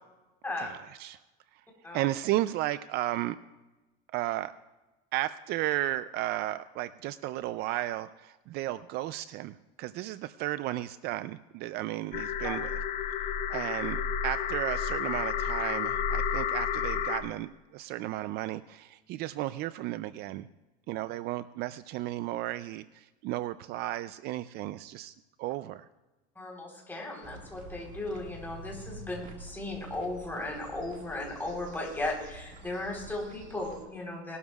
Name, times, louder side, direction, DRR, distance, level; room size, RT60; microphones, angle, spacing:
voice 1, 0.6-1.2 1.9-3.4 4.1-4.5 5.1-12.8 13.5-20.5 20.9-25.1 25.4-25.9, right 15 dB, 55° right, 14 dB, 0.4 m, -34 dB
sound 1, 12.1-17.2, left 7 dB, 40° left, 1.0 m, -31 dB
voice 2, 26.4-34.4, left 2 dB, 10° left, -1 dB, 3.8 m, -36 dB
sound 2, 27.2-33.8, right 2 dB, 40° right, 1.9 m, -48 dB
20.0 x 12.5 x 2.4 m, 1.1 s
cardioid pair, 140°, 20 cm